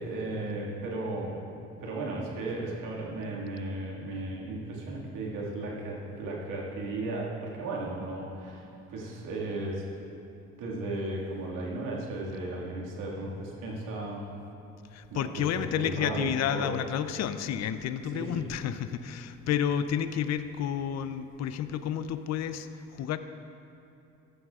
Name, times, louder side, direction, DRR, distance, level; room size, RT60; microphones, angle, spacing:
voice 1, 0.0-9.9 10.6-14.3 15.1-15.5 15.7-16.7 18.1-18.5, right 2 dB, 75° right, -3 dB, 2.1 m, -35 dB
voice 2, 14.9-23.2, left 9 dB, 55° left, 11 dB, 0.6 m, -31 dB
14.5 x 11.0 x 2.4 m, 2.8 s
hypercardioid pair, 55°, 32 cm